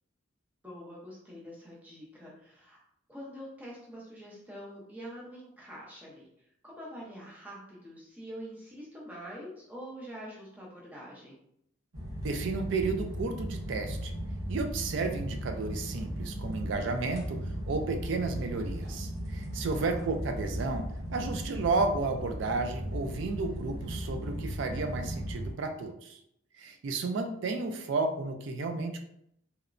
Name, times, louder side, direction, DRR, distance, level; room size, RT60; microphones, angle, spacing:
voice 1, 0.6-2.8 3.1-6.2 6.6-11.4 19.7-20.0, equal, 10° right, -5 dB, 0.6 m, -45 dB
sound 1, 11.9-25.5, equal, 85° right, 0.9 m, -37 dB
voice 2, 12.2-14.2 14.5-17.4 17.7-20.8 21.1-26.2 26.6-29.0, right 3 dB, 60° right, 6 dB, 0.3 m, -32 dB
2.9 x 2.1 x 2.5 m, 0.74 s
head